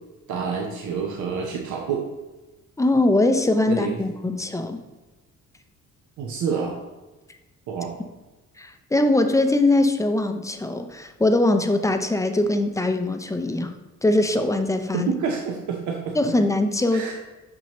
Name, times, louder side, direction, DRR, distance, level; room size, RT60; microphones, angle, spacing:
voice 1, 0.3-2.0 3.7-4.0 4.3-4.4 6.2-6.8 7.7-7.9 14.9-16.2 16.9-17.1, right 6 dB, 75° right, 0 dB, 0.8 m, -28 dB
voice 2, 2.8-4.8 8.6-13.7 14.0-15.1 16.1-17.1, left 2 dB, 10° left, 7 dB, 0.5 m, -21 dB
6.0 x 5.3 x 2.9 m, 1.1 s
cardioid pair, 90°, 30 cm